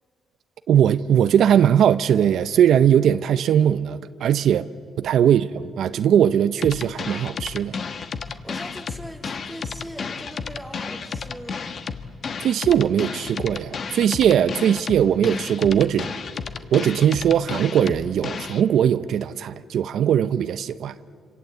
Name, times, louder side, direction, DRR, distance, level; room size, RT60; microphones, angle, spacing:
voice 1, 0.7-4.7 5.0-7.8 12.4-16.1 16.7-20.9, right 9 dB, 70° right, 0.6 m, -20 dB
sound 1, 6.6-18.6, left 5 dB, 50° left, 1.2 m, -32 dB
voice 2, 8.2-11.6, equal, ahead, 2.3 m, -40 dB
27.0 x 26.5 x 8.1 m
cardioid pair, 90°, 0 cm